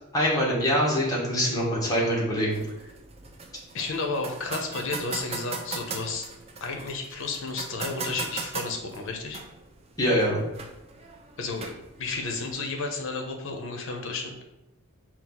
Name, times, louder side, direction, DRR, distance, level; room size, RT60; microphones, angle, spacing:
voice 1, 0.1-2.6 10.0-10.4, equal, 15° left, -5 dB, 1.0 m, -24 dB
sound 1, 2.5-12.5, right 4 dB, 30° right, 0.3 m, -39 dB
voice 2, 3.7-6.3 6.6-9.4 11.4-11.7 12.0-14.3, left 3 dB, 60° left, 3 dB, 0.6 m, -32 dB
4.3 x 2.3 x 4.0 m, 0.94 s
head